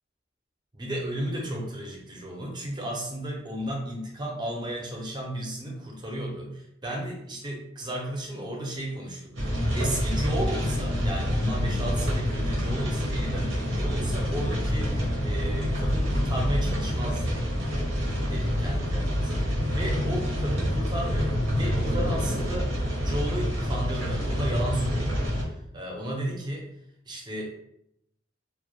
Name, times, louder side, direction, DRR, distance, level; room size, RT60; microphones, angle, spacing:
voice 1, 0.7-17.4 18.3-22.7 23.0-25.3 25.7-26.7 27.1-27.5, right 1 dB, 25° right, -1 dB, 0.5 m, -34 dB
sound 1, 9.3-25.4, equal, 90° right, 0.7 m, -27 dB
2.1 x 2.1 x 2.9 m, 0.75 s
head